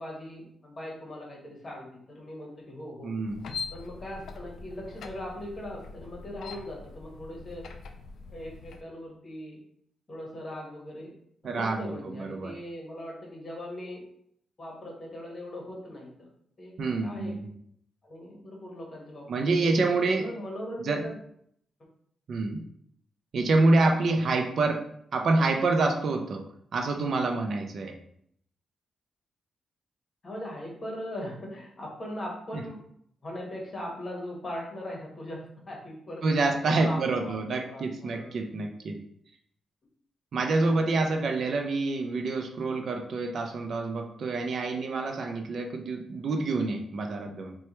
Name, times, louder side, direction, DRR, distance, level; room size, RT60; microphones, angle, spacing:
voice 1, 0.0-3.1 3.7-7.7 8.3-9.6 10.1-11.1 11.4-14.0 14.6-16.3 16.6-17.3 18.0-21.1 30.2-32.8 33.2-38.3, left 1 dB, 35° left, -2 dB, 1.1 m, -40 dB
voice 2, 3.0-3.4 11.4-12.5 16.8-17.5 19.3-20.2 20.8-21.0 22.3-22.6 23.3-24.8 25.1-26.4 26.7-28.0 36.2-39.0 40.3-47.6, right 3 dB, 60° right, 4 dB, 0.4 m, -27 dB
sound 1, 3.3-8.8, left 4 dB, 75° left, 0.3 m, -42 dB
4.3 x 2.2 x 2.9 m, 0.69 s
cardioid pair, 115°, 0 cm